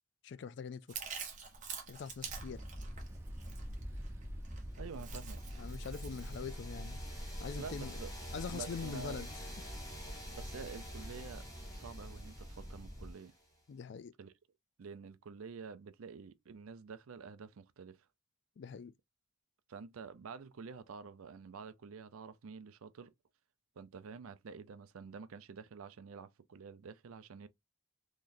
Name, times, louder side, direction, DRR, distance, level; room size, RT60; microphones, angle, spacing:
voice 1, 0.2-1.0 1.9-2.6 5.6-7.0 7.4-8.0 8.3-9.3 13.7-14.1 18.6-18.9, left 6 dB, 55° left, 0.3 m, -43 dB
Chewing mastication, 0.9-6.4, right 6 dB, 35° right, 1.0 m, -47 dB
sound 1, 2.2-13.1, equal, 10° right, 0.6 m, -45 dB
voice 2, 4.8-5.7 7.6-8.1 8.5-9.3 10.3-13.3 14.2-14.3 14.8-18.1 19.7-23.1 23.8-27.5, right 5 dB, 90° right, 0.5 m, -49 dB
sound 2, 4.9-13.6, equal, 15° left, 1.5 m, -51 dB
3.9 x 3.0 x 2.6 m
head